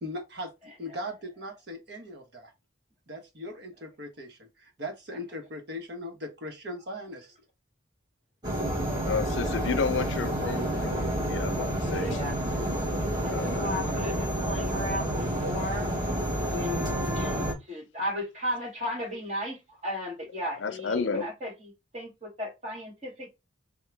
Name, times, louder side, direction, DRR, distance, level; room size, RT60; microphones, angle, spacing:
voice 1, 0.0-2.5 3.1-7.3, left 1 dB, 60° right, 1.1 m, -39 dB
voice 2, 0.6-1.0 9.4-9.5 11.9-12.4 13.0-15.9 16.5-23.3, left 1 dB, 35° right, 1.9 m, -36 dB
sound 1, 8.4-17.5, right 1 dB, 20° right, 1.3 m, -29 dB
voice 3, 9.1-12.2 13.3-13.7 17.2-17.3 20.6-21.2, left 5 dB, 75° left, 0.5 m, -31 dB
3.6 x 2.3 x 4.5 m
head